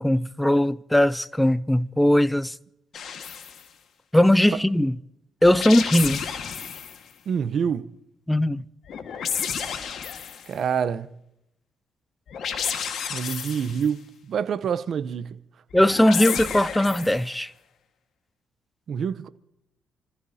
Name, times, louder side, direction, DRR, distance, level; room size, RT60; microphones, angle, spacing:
voice 1, 0.0-2.5 4.1-4.9 5.4-6.2 8.3-8.6 15.7-17.5, left 1 dB, 5° left, 0.6 m, -19 dB
sound 1, 2.9-3.6 5.4-7.0 8.8-10.5 12.3-13.9 15.7-17.3, left 7 dB, 65° left, 1.7 m, -31 dB
voice 2, 7.3-7.9 10.5-11.1 13.1-15.4 18.9-19.3, right 7 dB, 60° right, 0.8 m, -27 dB
29.0 x 15.0 x 2.8 m
cardioid pair, 90°, 0 cm